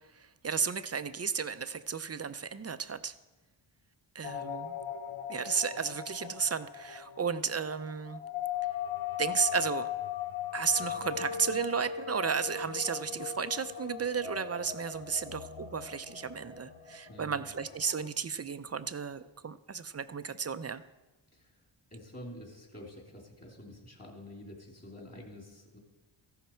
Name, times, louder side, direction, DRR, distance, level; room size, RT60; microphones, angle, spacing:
voice 1, 0.2-3.1 4.1-4.8 5.3-8.2 9.2-9.9 10.5-20.8, right 6 dB, 30° right, 12 dB, 0.5 m, -33 dB
sound 1, 4.2-18.1, left 9 dB, 75° left, 1.0 m, -39 dB
voice 2, 17.1-17.4 21.3-21.5 21.9-25.8, left 1 dB, 30° left, 0 dB, 3.0 m, -48 dB
15.0 x 11.5 x 4.4 m, 1.1 s
wide cardioid pair, 115°, 49 cm